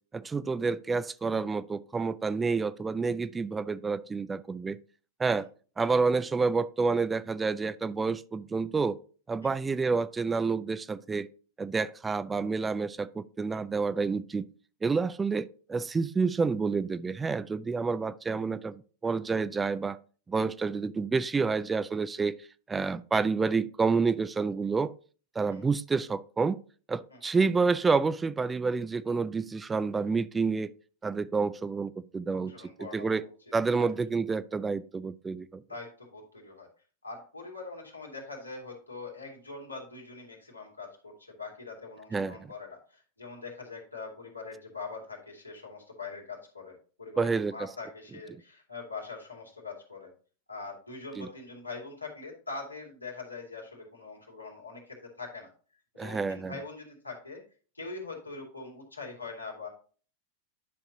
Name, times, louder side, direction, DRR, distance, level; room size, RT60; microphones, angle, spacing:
voice 1, 0.1-4.8 5.2-5.5 5.8-9.0 9.3-11.3 11.6-14.5 14.8-20.0 20.3-22.4 22.7-24.9 25.4-26.6 26.9-30.7 31.0-32.5 32.8-33.2 33.5-35.6 42.1-42.5 47.2-47.7 48.3-48.4 51.2-51.3 56.0-56.5, right 4 dB, 15° right, 16 dB, 0.3 m, -29 dB
voice 2, 32.3-33.3 33.8-33.9 35.7-36.7 37.0-50.1 50.5-55.5 55.9-57.4 57.7-59.7, left 4 dB, 85° left, -2 dB, 2.5 m, -43 dB
10.5 x 5.8 x 2.8 m, 0.40 s
figure-of-eight pair, 90°, 0 cm